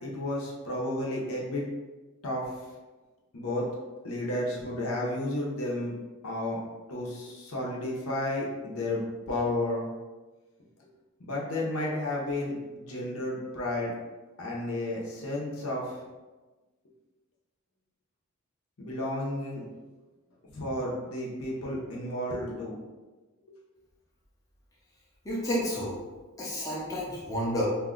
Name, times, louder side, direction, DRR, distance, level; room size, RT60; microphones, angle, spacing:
voice 1, 0.0-1.6 2.2-2.5 3.3-3.7 4.0-5.9 6.2-6.6 6.9-9.0 9.3-9.9 11.2-13.9 14.4-15.9 18.8-19.7 20.5-22.8, left 1 dB, 70° left, -4 dB, 0.8 m, -32 dB
voice 2, 25.2-26.0 26.4-27.6, equal, 15° left, -6 dB, 0.6 m, -30 dB
2.7 x 2.2 x 3.7 m, 1.2 s
head